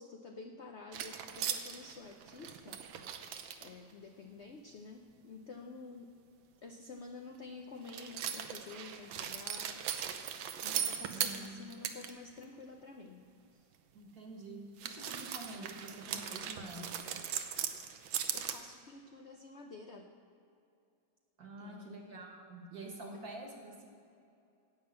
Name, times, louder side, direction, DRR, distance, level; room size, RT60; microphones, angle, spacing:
voice 1, 0.0-2.8 3.6-6.1 6.6-9.8 10.6-13.7 18.3-20.1 21.6-22.1 23.1-23.2, left 3 dB, 75° left, 4 dB, 0.6 m, -50 dB
sound 1, 0.9-3.7 7.8-12.1 12.4-12.5 14.8-18.6, right 9 dB, 90° right, 1.5 m, -39 dB
voice 2, 11.1-11.7 13.9-17.1 21.4-23.9, right 2 dB, 55° right, 1 dB, 2.1 m, -47 dB
10.5 x 8.7 x 7.4 m, 2.6 s
omnidirectional pair, 2.1 m